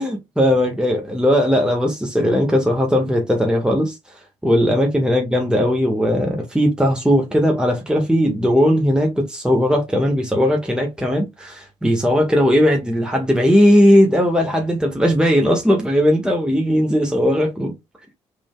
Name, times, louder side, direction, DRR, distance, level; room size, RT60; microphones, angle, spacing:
voice 1, 0.0-4.0 4.4-17.7, equal, 5° right, 1.6 m, -18 dB
4.8 x 3.7 x 2.3 m
hypercardioid pair, 45°, 15 cm